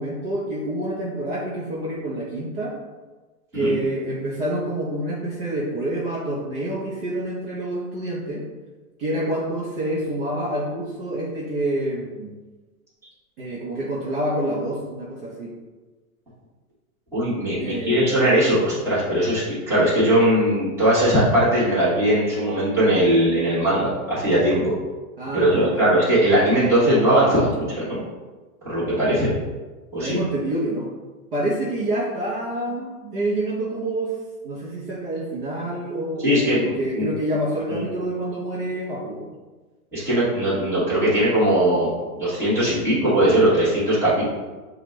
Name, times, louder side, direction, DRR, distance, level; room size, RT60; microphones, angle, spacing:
voice 1, 0.0-2.7 3.5-8.4 9.0-12.4 13.4-15.5 17.6-18.2 25.2-25.9 30.0-30.9 31.3-34.1 34.4-39.3, right 1 dB, 40° right, -6 dB, 0.8 m, -27 dB
voice 2, 17.1-24.7 25.3-28.0 28.6-29.3 29.9-30.2 36.2-37.1 37.7-37.8 39.9-44.2, right 1 dB, 5° right, -12 dB, 1.2 m, -20 dB
5.6 x 2.4 x 3.1 m, 1.3 s
hypercardioid pair, 160°, 45 cm